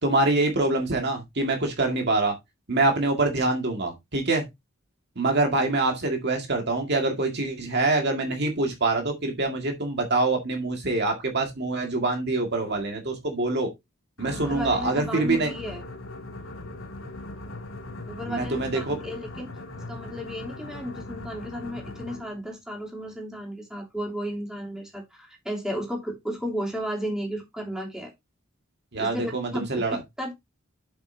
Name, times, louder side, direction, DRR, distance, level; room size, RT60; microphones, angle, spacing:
voice 1, 0.0-2.3 2.7-4.5 5.2-13.7 14.2-15.5 18.3-19.0 28.9-30.0, right 2 dB, 55° right, 2.0 m, -25 dB
sound 1, 14.2-22.4, left 2 dB, 80° left, 2.3 m, -39 dB
voice 2, 14.3-15.8 18.1-19.5 19.9-28.1 29.0-29.6 30.2-30.3, equal, 5° right, 3.1 m, -34 dB
8.0 x 7.6 x 2.7 m
head